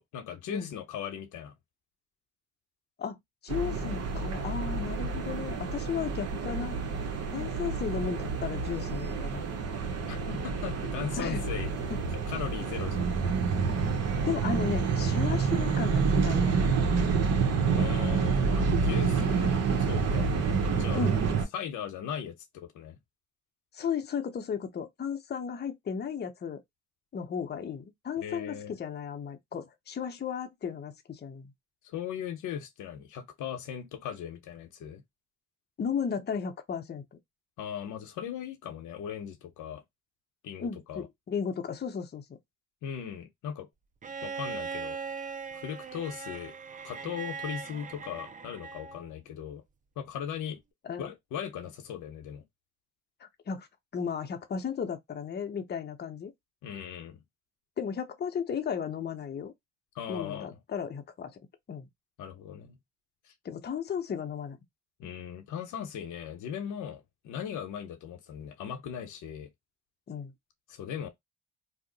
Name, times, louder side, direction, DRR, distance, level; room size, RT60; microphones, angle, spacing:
voice 1, 0.0-1.5 10.1-11.7 12.1-13.1 17.8-19.5 19.8-20.3 20.7-21.1 21.5-23.0 28.2-28.8 31.8-35.0 37.6-39.8 40.4-41.1 42.8-43.7 44.2-45.0 45.5-46.5 46.8-49.6 50.0-50.6 51.0-52.4 56.6-57.2 59.9-60.5 62.2-62.8 63.2-63.3 65.0-69.5 70.7-71.1, left 8 dB, 80° left, 0.7 m, -38 dB
voice 2, 3.4-6.8 7.3-9.5 11.2-11.4 11.9-12.0 14.2-16.8 20.9-21.2 23.7-26.6 27.1-31.5 35.8-37.0 40.6-42.2 50.8-51.1 53.2-53.7 53.9-56.3 57.8-59.5 60.1-61.4 61.7-61.9 63.4-64.6 70.1-70.3, left 7 dB, 35° left, 0.6 m, -34 dB
sound 1, 3.5-21.5, right 5 dB, 55° right, 0.8 m, -28 dB
Bowed string instrument, 44.0-49.1 50.5-50.6, right 5 dB, 25° right, 0.4 m, -39 dB
2.7 x 2.0 x 3.8 m
cardioid pair, 90°, 30 cm